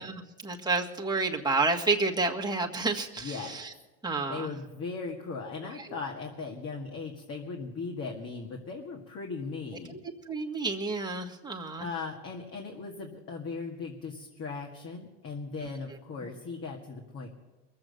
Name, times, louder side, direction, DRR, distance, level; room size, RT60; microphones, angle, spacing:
voice 1, 0.0-3.7 4.0-4.5 5.7-6.0 9.9-10.0 10.2-11.9 15.6-15.7, right 3 dB, 15° right, 1 dB, 1.7 m, -30 dB
voice 2, 3.2-3.6 4.3-10.0 11.8-17.3, left 4 dB, 45° left, 1 dB, 2.0 m, -38 dB
22.0 x 7.7 x 6.9 m, 1.1 s
supercardioid pair, 95°, 32 cm